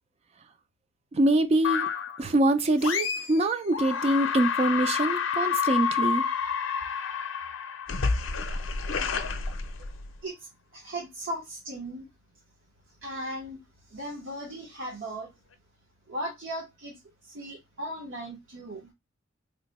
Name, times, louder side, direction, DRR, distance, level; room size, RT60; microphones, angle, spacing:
voice 1, 1.1-1.9 2.2-6.2, right 1 dB, 30° right, 0.4 m, -24 dB
sound 1, 1.6-2.2 2.8-3.4 3.7-10.2, left 6 dB, 70° left, 0.5 m, -29 dB
voice 2, 10.2-12.1 12.9-13.6 13.9-15.3 16.1-18.9, right 1 dB, 70° right, 1.0 m, -37 dB
3.1 x 2.2 x 4.0 m
head